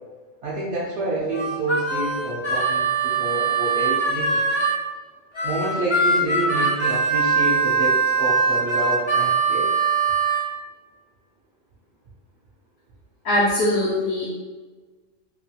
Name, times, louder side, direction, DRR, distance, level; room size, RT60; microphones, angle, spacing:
voice 1, 0.4-4.4 5.4-9.7, right 2 dB, 70° right, -6 dB, 0.9 m, -28 dB
Harmonica, 1.3-4.8 5.3-10.5, right 4 dB, 40° left, 0.4 m, -22 dB
voice 2, 13.2-14.3, left 1 dB, 70° left, -9 dB, 1.0 m, -21 dB
2.9 x 2.3 x 2.7 m, 1.3 s
omnidirectional pair, 1.3 m